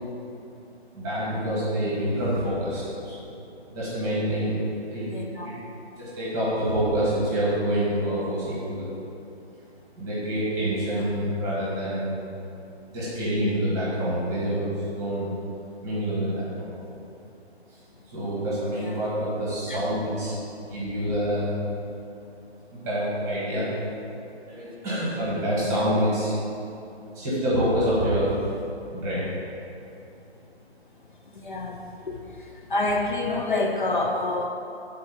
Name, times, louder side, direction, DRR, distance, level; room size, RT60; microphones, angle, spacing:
voice 1, 0.9-3.4 3.7-5.1 5.4-5.5 6.0-8.9 10.0-12.1 12.9-15.3 15.8-16.7 18.1-20.3 20.7-21.5 22.7-23.7 24.5-26.4 27.1-28.3 28.9-29.3, equal, 10° right, -9 dB, 1.1 m, -27 dB
voice 2, 5.1-5.5 19.7-19.8 25.7-26.0 31.4-31.8 32.1-32.2 32.7-34.5, left 2 dB, 50° left, 1 dB, 0.5 m, -27 dB
7.9 x 3.9 x 3.8 m, 2.7 s
hypercardioid pair, 155°, 33 cm